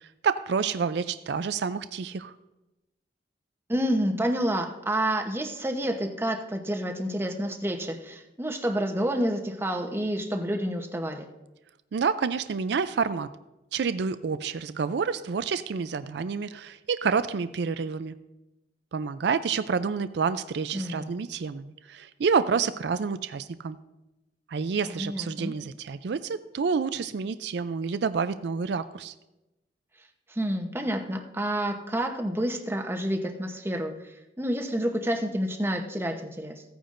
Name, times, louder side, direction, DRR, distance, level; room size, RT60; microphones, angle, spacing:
voice 1, 0.2-2.3 11.9-13.3 13.7-18.2 18.9-23.8 24.5-29.1, right 5 dB, 70° right, 13 dB, 0.4 m, -28 dB
voice 2, 3.7-11.3 20.7-21.1 24.8-25.6 30.3-33.9 34.4-36.6, right 1 dB, 15° right, 4 dB, 0.9 m, -29 dB
15.5 x 9.3 x 2.6 m, 0.99 s
head